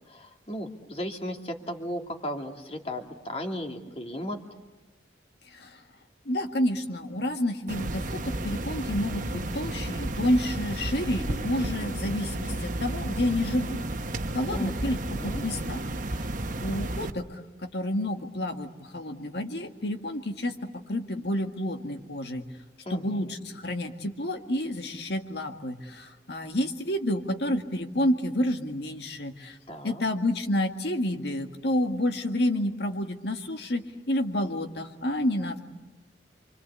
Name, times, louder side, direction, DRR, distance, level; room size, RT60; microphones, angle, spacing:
voice 1, 0.1-4.4 14.5-15.4 22.9-23.3 29.7-30.0, equal, 35° left, 4 dB, 2.6 m, -36 dB
voice 2, 5.5-5.8 6.3-13.8 14.3-15.8 16.1-16.3 16.6-22.5 22.9-29.6 29.8-35.7, left 1 dB, 60° left, 5 dB, 1.9 m, -29 dB
sound 1, 7.7-17.1, right 1 dB, 45° right, 1.3 m, -32 dB
29.0 x 25.0 x 8.4 m, 1.1 s
head